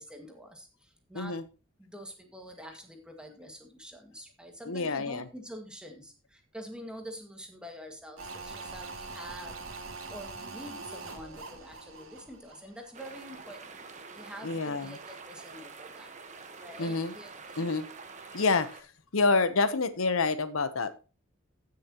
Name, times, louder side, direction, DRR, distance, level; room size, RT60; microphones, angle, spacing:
voice 1, 0.0-1.4 1.8-16.1 16.6-17.7, equal, 5° right, 3 dB, 1.8 m, -46 dB
voice 2, 4.7-5.2 14.4-14.9 16.8-17.1 17.6-17.8 18.3-18.8 19.1-21.1, left 3 dB, 80° left, 12 dB, 0.9 m, -27 dB
sound 1, 8.2-13.3 13.6-13.7, right 3 dB, 80° right, 2.4 m, -43 dB
sound 2, 12.9-18.8, right 4 dB, 35° right, 1.2 m, -47 dB
15.0 x 6.7 x 2.9 m, 0.32 s
head